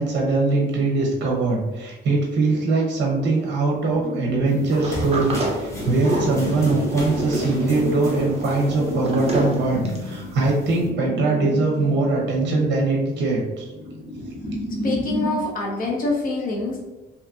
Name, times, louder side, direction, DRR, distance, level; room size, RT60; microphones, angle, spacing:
voice 1, 0.0-13.7, right 3 dB, 75° right, -1 dB, 0.6 m, -22 dB
sound 1, 3.9-15.4, left 1 dB, 5° right, 1.4 m, -32 dB
sound 2, 4.5-10.9, equal, 15° left, 0.7 m, -37 dB
Sliding door, 4.7-10.2, right 2 dB, 35° right, 0.6 m, -29 dB
voice 2, 14.7-16.8, left 2 dB, 50° left, -2 dB, 0.7 m, -26 dB
2.7 x 2.5 x 2.3 m, 1.1 s
cardioid pair, 125°, 18 cm